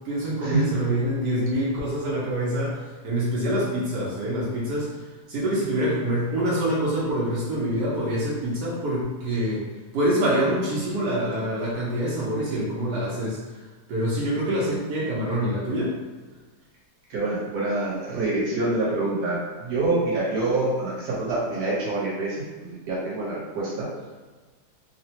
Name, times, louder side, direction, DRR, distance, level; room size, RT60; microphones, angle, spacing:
voice 1, 0.0-4.9 5.3-9.6 9.9-13.4 13.9-15.9, right 1 dB, 90° right, -8 dB, 1.4 m, -25 dB
voice 2, 17.1-23.9, right 2 dB, 70° right, -7 dB, 1.5 m, -26 dB
3.6 x 2.1 x 2.8 m, 1.3 s
omnidirectional pair, 1.7 m